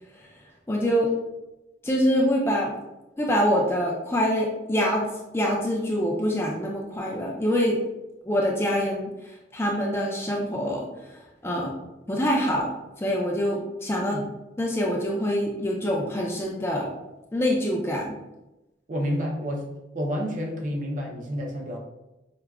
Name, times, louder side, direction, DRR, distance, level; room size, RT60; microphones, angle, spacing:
voice 1, 0.7-1.1 1.8-2.8 3.2-7.8 8.3-9.1 9.5-10.9 11.4-11.7 12.1-12.7 13.0-14.2 14.6-16.9 17.3-18.2, equal, 15° left, -2 dB, 0.4 m, -25 dB
voice 2, 18.9-19.7 19.9-21.8, equal, 40° right, 0 dB, 0.5 m, -29 dB
4.7 x 2.1 x 2.3 m, 0.97 s
head